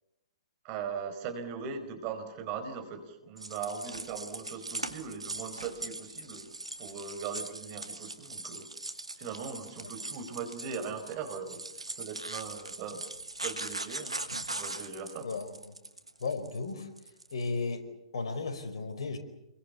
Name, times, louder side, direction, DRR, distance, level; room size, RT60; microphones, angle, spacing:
voice 1, 0.6-6.5 6.8-8.7 9.2-13.0 13.4-14.2 14.5-15.4, right 6 dB, 35° right, 7 dB, 4.7 m, -39 dB
sound 1, 3.4-17.5, right 2 dB, 85° right, 2.1 m, -40 dB
voice 2, 15.2-15.7 16.2-16.9 17.3-17.8 18.1-19.2, left 4 dB, 60° left, 7 dB, 5.1 m, -35 dB
29.5 x 23.0 x 7.0 m, 0.87 s
figure-of-eight pair, 120°, 3 cm